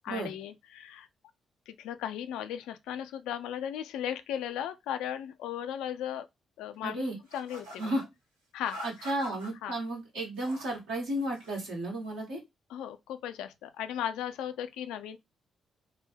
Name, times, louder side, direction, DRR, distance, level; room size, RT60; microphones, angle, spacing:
voice 1, 0.0-1.1 1.7-6.3 6.6-7.9 8.5-9.2 9.6-9.8 12.7-15.2, left 10 dB, 70° left, 0.3 m, -36 dB
voice 2, 6.8-7.2 7.8-8.0 8.8-12.4, right 1 dB, 75° right, 1.6 m, -33 dB
sound 1, 7.3-8.1 8.6-9.5 10.2-10.8 11.1-11.7, equal, 90° right, 0.7 m, -46 dB
3.4 x 2.1 x 3.3 m
hypercardioid pair, 40°, 0 cm